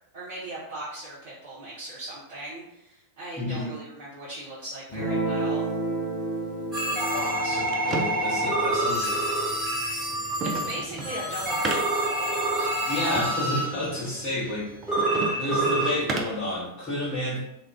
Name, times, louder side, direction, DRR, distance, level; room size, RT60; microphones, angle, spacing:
voice 1, 0.1-5.7 10.4-12.3, right 2 dB, 55° right, -8 dB, 0.7 m, -38 dB
voice 2, 3.4-3.7 6.9-9.3 12.8-14.7 14.9-17.4, left 1 dB, 15° left, -12 dB, 0.9 m, -31 dB
Guitar, 4.9-11.5, right 2 dB, 50° left, 0.6 m, -33 dB
sound 1, 6.7-13.9 14.9-16.0, right 1 dB, 5° right, 1.2 m, -27 dB
sound 2, 7.3-16.5, right 3 dB, 30° right, 0.4 m, -36 dB
2.4 x 2.2 x 3.4 m, 0.87 s
figure-of-eight pair, 90°, 0 cm